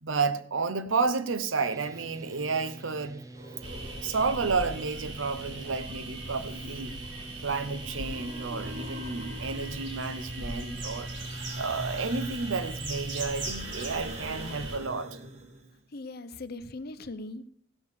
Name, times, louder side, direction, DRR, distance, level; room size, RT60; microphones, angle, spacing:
voice 1, 0.0-3.2 4.0-7.0 7.4-11.1 11.6-15.2, right 4 dB, 85° right, 0.8 m, -31 dB
sound 1, 1.6-13.5, right 1 dB, 15° right, 0.7 m, -43 dB
sound 2, 3.3-4.6 6.3-7.3 7.6-10.2 10.9-15.8, right 1 dB, 35° right, 1.5 m, -45 dB
sound 3, 3.6-14.8, right 2 dB, 65° right, 2.7 m, -40 dB
voice 2, 15.9-17.5, left 2 dB, 50° left, 0.8 m, -40 dB
15.5 x 6.6 x 7.0 m
head